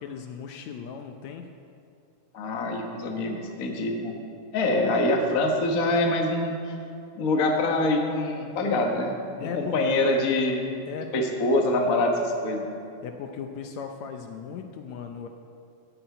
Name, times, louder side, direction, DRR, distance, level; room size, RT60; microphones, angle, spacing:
voice 1, 0.0-1.5 9.4-9.9 10.9-11.2 13.0-15.3, left 6 dB, 75° left, 5 dB, 1.8 m, -37 dB
voice 2, 2.3-4.2 4.5-6.7 7.1-9.1 9.4-10.6 11.1-12.7, left 2 dB, 45° left, 1 dB, 1.1 m, -25 dB
14.5 x 6.1 x 9.3 m, 2.5 s
omnidirectional pair, 3.5 m